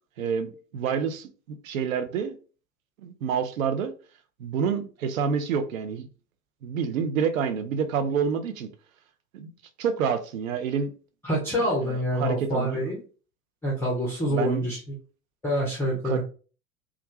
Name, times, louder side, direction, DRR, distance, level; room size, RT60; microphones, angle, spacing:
voice 1, 0.2-2.4 3.0-3.9 4.4-6.1 6.6-8.7 9.3-9.5 9.8-10.9 11.5-12.8 14.3-14.7 16.0-16.2, right 7 dB, 70° right, 0.5 m, -28 dB
voice 2, 11.2-13.0 13.6-14.8 15.4-16.2, equal, 5° left, 0.4 m, -26 dB
2.4 x 2.2 x 2.9 m
figure-of-eight pair, 85°, 43 cm